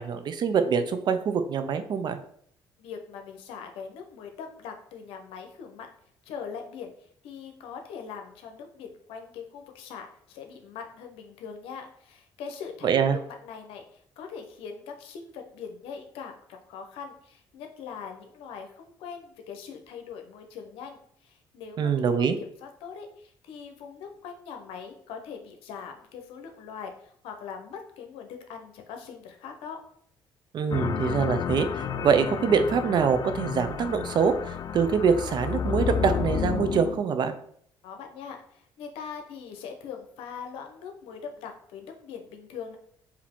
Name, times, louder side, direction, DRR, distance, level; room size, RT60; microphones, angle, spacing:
voice 1, 0.0-2.2 12.8-13.2 21.8-22.4 30.5-37.4, right 6 dB, 55° right, 9 dB, 0.5 m, -24 dB
voice 2, 2.8-5.9 6.2-6.9 7.2-29.8 37.8-42.8, left 6 dB, 85° left, 4 dB, 0.8 m, -41 dB
sound 1, 30.7-37.0, left 7 dB, 45° left, 0.4 m, -31 dB
4.8 x 2.7 x 3.6 m, 0.64 s
cardioid pair, 95°, 9 cm